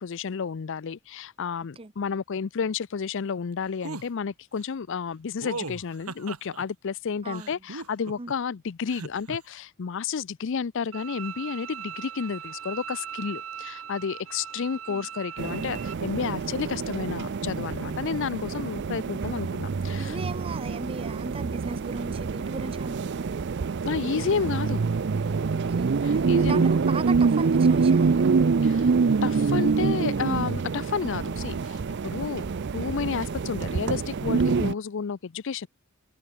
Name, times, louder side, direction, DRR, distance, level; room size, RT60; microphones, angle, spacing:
voice 1, 0.0-20.2 23.8-24.9 26.0-26.7 28.6-28.9 29.2-32.4 32.7-35.7, left 6 dB, 60° left, 0.5 m, -31 dB
sound 1, 3.8-4.1 5.4-6.6 7.3-8.3 8.9-9.4, right 3 dB, 90° right, 3.3 m, -37 dB
voice 2, 7.2-7.6 8.2-8.3 14.9-15.1 20.0-23.2 25.5-28.3, right 3 dB, 25° right, 0.8 m, -37 dB
Bowed string instrument, 10.9-15.9, right 9 dB, 70° right, 0.9 m, -39 dB
sound 2, 15.4-34.7, right 5 dB, 55° right, 0.5 m, -26 dB
head